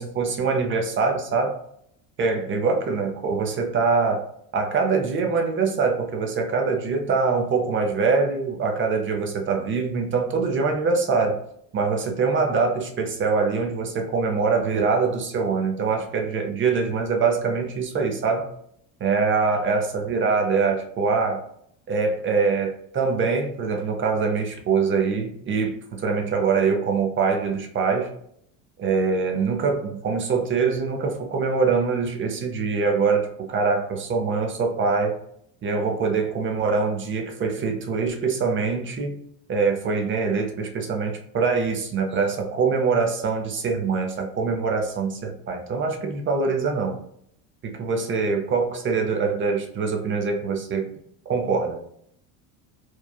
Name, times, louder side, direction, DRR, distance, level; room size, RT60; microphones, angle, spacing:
voice 1, 0.0-1.6 2.2-4.3 4.5-11.4 11.7-18.5 19.0-21.4 21.9-28.1 28.8-35.2 35.6-39.2 39.5-47.0 47.6-50.9 51.3-51.8, right 4 dB, 30° right, 3 dB, 0.6 m, -24 dB
3.1 x 2.3 x 2.2 m, 0.70 s
supercardioid pair, 115°, 40 cm